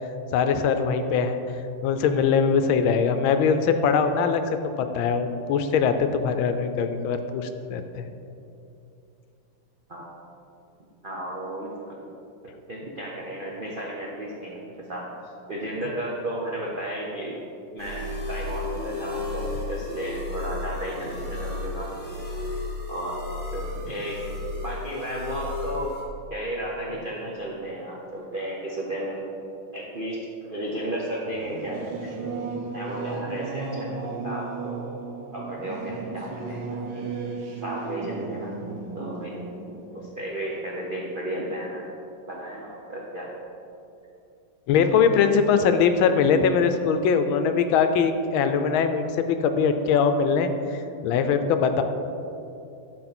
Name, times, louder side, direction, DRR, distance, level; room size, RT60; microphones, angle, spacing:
voice 1, 0.3-1.4 1.8-4.4 4.9-8.0 44.7-51.8, left 6 dB, 75° left, 8 dB, 1.3 m, -22 dB
voice 2, 11.0-12.1 12.7-15.1 15.5-17.4 17.7-21.9 22.9-23.2 23.5-24.2 24.6-26.0 26.3-29.2 29.7-32.2 32.7-34.9 35.3-37.1 37.6-38.5 38.9-39.4 39.9-41.9 42.3-43.3, right 1 dB, 85° right, -4 dB, 0.4 m, -33 dB
sound 1, 17.8-26.0, left 2 dB, 5° left, 1.7 m, -33 dB
Singing / Musical instrument, 31.2-41.3, right 4 dB, 65° right, 1.5 m, -35 dB
12.0 x 4.3 x 4.2 m, 2.7 s
omnidirectional pair, 2.3 m